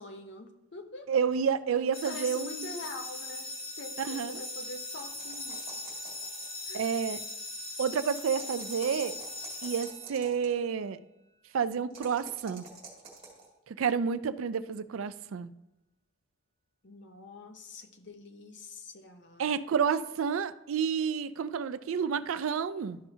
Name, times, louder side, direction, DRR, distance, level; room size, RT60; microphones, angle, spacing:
voice 1, 0.0-1.2 2.0-5.7 6.7-6.9 16.8-19.5, left 2 dB, 55° left, 6 dB, 0.8 m, -45 dB
voice 2, 1.1-2.7 4.0-4.4 6.7-7.2 7.8-9.2 9.6-11.0 11.5-12.6 13.7-15.5 19.4-23.0, right 7 dB, 80° right, 14 dB, 0.4 m, -30 dB
sound 1, 1.9-10.6, left 2 dB, 30° left, 1.2 m, -40 dB
sound 2, 4.9-6.8 8.2-10.5 11.9-13.5, right 4 dB, 30° right, 2.2 m, -48 dB
12.5 x 5.5 x 2.7 m, 0.95 s
head